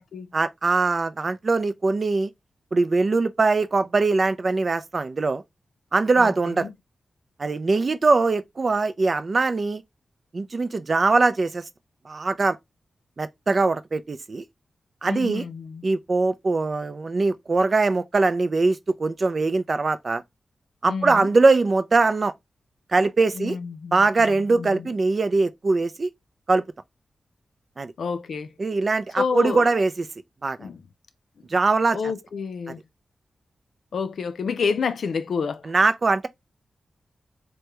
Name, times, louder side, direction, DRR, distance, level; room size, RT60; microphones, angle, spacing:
voice 1, 0.3-2.3 2.7-5.4 5.9-6.7 7.4-9.8 10.3-11.6 12.1-12.6 13.2-14.4 15.0-15.4 15.8-20.2 20.8-22.3 22.9-23.6 23.9-26.1 26.5-26.6 27.8-27.9 28.6-30.1 30.4-30.7 31.5-32.0 32.7-32.8 35.6-36.3, right 3 dB, 50° right, 0.4 m, -22 dB
voice 2, 15.0-15.8 20.9-21.3 23.4-24.9 28.0-28.5 29.2-29.7 30.6-30.8 31.9-32.8 33.9-35.7, left 5 dB, 80° left, 0.4 m, -29 dB
3.3 x 2.1 x 2.9 m
cardioid pair, 45°, 0 cm